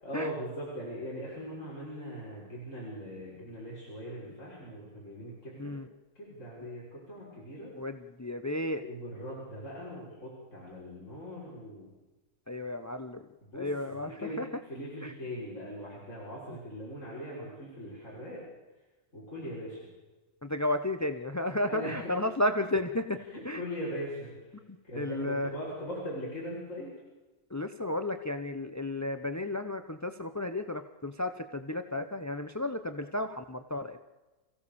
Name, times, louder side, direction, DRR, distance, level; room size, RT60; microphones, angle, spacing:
voice 1, 0.0-5.7 6.1-7.7 8.8-11.9 13.5-18.4 19.1-19.9 21.7-22.1 23.3-24.5 24.8-26.9, equal, 40° left, -6 dB, 6.5 m, -40 dB
voice 2, 7.7-8.8 12.5-13.2 13.5-14.5 15.0-15.1 20.4-23.6 24.9-25.5 27.5-34.0, left 1 dB, 25° left, 9 dB, 0.4 m, -33 dB
28.0 x 16.5 x 7.1 m, 1.2 s
omnidirectional pair, 1.9 m